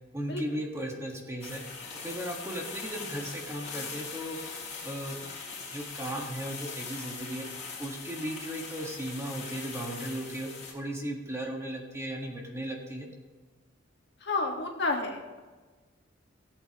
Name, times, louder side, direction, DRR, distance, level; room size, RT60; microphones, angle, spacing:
voice 1, 0.1-1.6 1.9-4.4 4.8-5.2 5.7-7.4 7.8-13.1, right 1 dB, 15° right, 0 dB, 1.5 m, -36 dB
sound 1, 1.4-10.7, left 5 dB, 40° left, 3.6 m, -41 dB
voice 2, 14.2-15.4, left 3 dB, 65° left, 1 dB, 1.6 m, -30 dB
17.5 x 8.2 x 3.0 m, 1.3 s
head